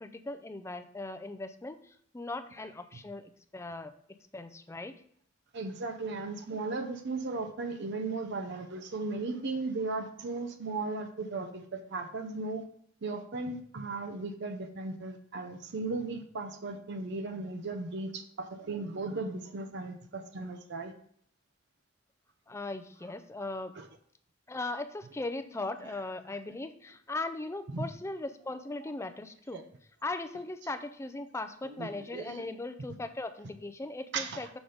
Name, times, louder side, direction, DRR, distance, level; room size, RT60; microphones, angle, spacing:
voice 1, 0.0-3.9 4.3-4.9 22.5-23.7 24.5-29.6 30.0-34.5, left 2 dB, 15° left, 9 dB, 0.4 m, -38 dB
voice 2, 5.5-12.6 13.0-20.9 23.7-23.9 27.7-27.9 29.5-29.7 30.6-30.7 31.6-32.5 34.1-34.5, right 3 dB, 60° right, 5 dB, 0.6 m, -36 dB
6.0 x 3.9 x 5.0 m, 0.64 s
head